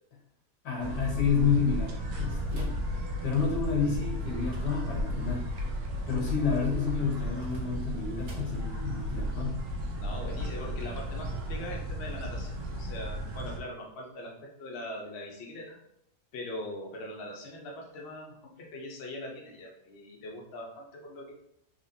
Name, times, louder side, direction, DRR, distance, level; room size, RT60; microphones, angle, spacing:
voice 1, 0.6-2.7 3.2-5.5 6.1-9.6, left 6 dB, 80° left, -1 dB, 1.6 m, -29 dB
sound 1, 0.8-13.6, equal, 70° right, 1.2 m, -34 dB
sound 2, 2.5-3.9 7.2-8.8, equal, 85° right, 1.5 m, -49 dB
voice 2, 9.9-15.8 16.3-21.3, left 1 dB, 50° left, -1 dB, 0.9 m, -41 dB
4.1 x 3.0 x 2.7 m, 0.76 s
omnidirectional pair, 1.7 m